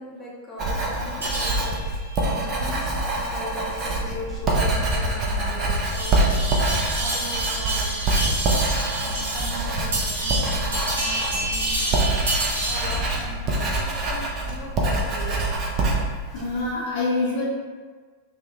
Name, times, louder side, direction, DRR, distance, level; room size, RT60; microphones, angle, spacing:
voice 1, 0.0-7.9 9.0-12.3 12.6-15.4, equal, 15° left, -6 dB, 0.6 m, -39 dB
Writing, 0.6-16.7, right 2 dB, 30° right, 0.5 m, -25 dB
sound 1, 1.2-13.0, right 1 dB, 65° right, 0.8 m, -30 dB
sound 2, 5.1-12.3, right 3 dB, 5° right, 1.1 m, -41 dB
voice 2, 16.3-17.4, left 3 dB, 55° left, -4 dB, 0.5 m, -26 dB
2.5 x 2.0 x 2.6 m, 1.5 s
figure-of-eight pair, 90°, 0 cm